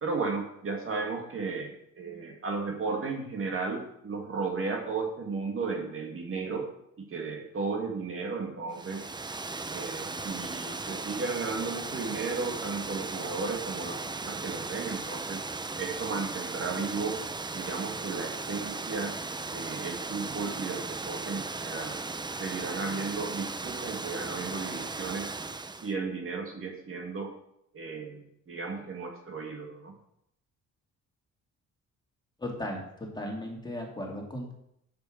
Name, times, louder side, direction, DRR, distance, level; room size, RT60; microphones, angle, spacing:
voice 1, 0.0-6.7 7.0-9.1 9.7-15.4 15.8-17.2 17.5-19.1 19.5-22.0 22.4-25.3 25.8-27.3 27.7-28.2 28.5-29.9, right 4 dB, 45° right, 1 dB, 2.1 m, -34 dB
Water, 8.7-25.9, right 3 dB, 15° right, 0.6 m, -37 dB
voice 2, 32.4-34.5, left 1 dB, 15° left, 0 dB, 2.8 m, -36 dB
7.6 x 7.1 x 6.4 m, 0.76 s
cardioid pair, 90°, 30 cm